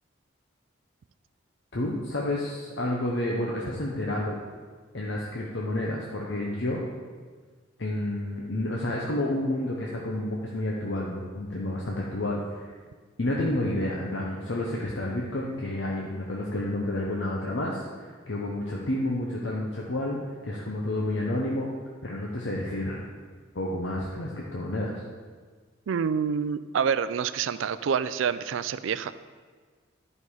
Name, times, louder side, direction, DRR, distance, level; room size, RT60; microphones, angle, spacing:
voice 1, 1.7-4.4 4.9-6.8 7.8-12.7 13.2-21.7 22.0-23.1 23.5-25.0, left 1 dB, 65° left, -3 dB, 0.9 m, -30 dB
voice 2, 25.9-29.1, right 7 dB, 75° right, 14 dB, 0.4 m, -27 dB
11.0 x 5.3 x 4.8 m, 1.5 s
head